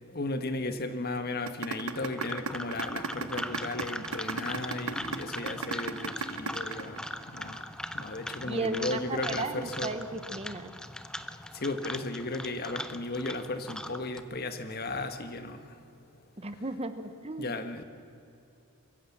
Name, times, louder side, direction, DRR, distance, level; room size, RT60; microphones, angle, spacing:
voice 1, 0.1-7.6 7.9-9.9 11.5-15.6 17.4-17.8, left 2 dB, 45° left, 8 dB, 1.4 m, -35 dB
sound 1, 1.5-7.5, right 5 dB, 90° right, 1.1 m, -34 dB
sound 2, 1.8-14.2, left 1 dB, 5° left, 0.6 m, -40 dB
voice 2, 8.5-10.7 16.4-17.5, right 2 dB, 30° right, 10 dB, 1.0 m, -35 dB
23.5 x 15.5 x 7.3 m, 2.5 s
head